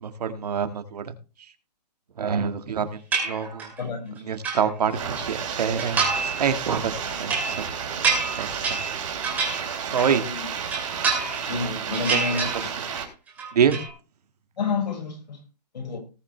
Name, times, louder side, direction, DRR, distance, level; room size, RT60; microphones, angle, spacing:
voice 1, 0.0-1.1 2.2-3.7 4.2-6.9 7.2-7.6 8.4-8.7 9.8-10.2 11.6-12.4 13.5-13.8, right 7 dB, 70° right, 1.9 m, -26 dB
sound 1, 3.1-3.8 4.2-5.3 5.8-6.4 6.7-10.2 10.6-11.6 11.9-13.0 13.3-13.9, right 4 dB, 5° right, 2.6 m, -28 dB
voice 2, 3.8-4.4 9.9-10.5 11.5-12.7 14.5-15.4 15.7-16.0, left 4 dB, 85° left, 5.7 m, -30 dB
sound 2, 4.9-13.1, right 7 dB, 50° right, 3.8 m, -32 dB
18.5 x 7.7 x 3.3 m
hypercardioid pair, 180°, 21 cm